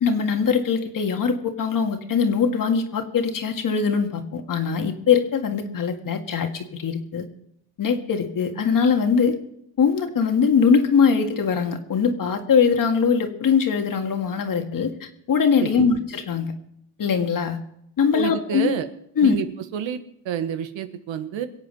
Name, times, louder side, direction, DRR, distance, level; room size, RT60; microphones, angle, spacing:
voice 1, 0.0-7.3 7.8-9.4 9.8-16.5 17.0-17.6 18.0-18.7 19.2-19.4, left 6 dB, 45° left, 5 dB, 1.9 m, -21 dB
voice 2, 18.1-18.9 19.2-19.5 19.7-20.0 20.2-21.5, right 9 dB, 70° right, 9 dB, 1.4 m, -28 dB
23.0 x 8.3 x 5.4 m, 0.76 s
cardioid pair, 110°, 47 cm